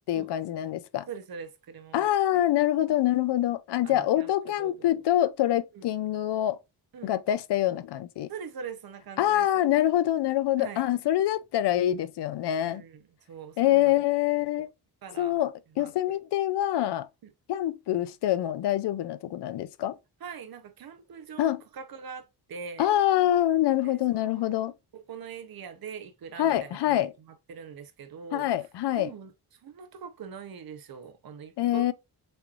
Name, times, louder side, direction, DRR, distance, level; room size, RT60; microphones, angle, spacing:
voice 1, 0.0-1.1 1.9-6.6 7.0-8.3 9.2-12.8 13.6-14.7 15.2-17.1 17.5-20.0 21.4-21.6 22.8-24.7 26.4-27.1 28.3-29.1 31.6-31.9, left 13 dB, 85° left, 0.5 m, -25 dB
voice 2, 1.1-2.5 3.8-4.3 4.6-4.9 5.7-5.9 6.9-7.1 8.3-9.7 10.6-10.8 12.6-14.0 14.6-14.7 15.0-15.4 15.8-16.2 17.2-17.3 20.2-22.9 23.8-24.6 24.9-28.5 28.9-29.3 29.6-31.9, right 6 dB, 60° right, 0.8 m, -43 dB
6.3 x 3.0 x 2.4 m
wide cardioid pair, 155°, 40 cm